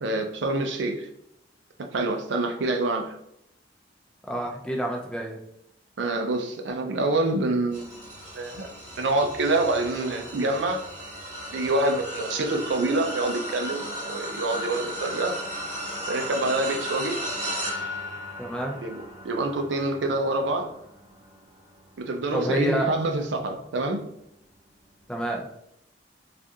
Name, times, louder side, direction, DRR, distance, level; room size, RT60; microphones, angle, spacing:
voice 1, 0.0-1.1 1.8-3.2 6.0-7.9 8.3-8.7 9.0-10.9 11.5-15.4 16.1-17.2 18.8-19.0 19.2-20.7 22.0-24.0, right 2 dB, 80° right, 4 dB, 0.5 m, -26 dB
voice 2, 4.3-5.4 18.4-18.8 22.3-22.9 25.1-25.5, right 1 dB, 5° left, 0 dB, 0.5 m, -28 dB
sound 1, 7.7-23.2 23.7-24.0 25.3-25.4, equal, 35° right, 1.3 m, -36 dB
3.5 x 2.5 x 2.7 m, 0.76 s
head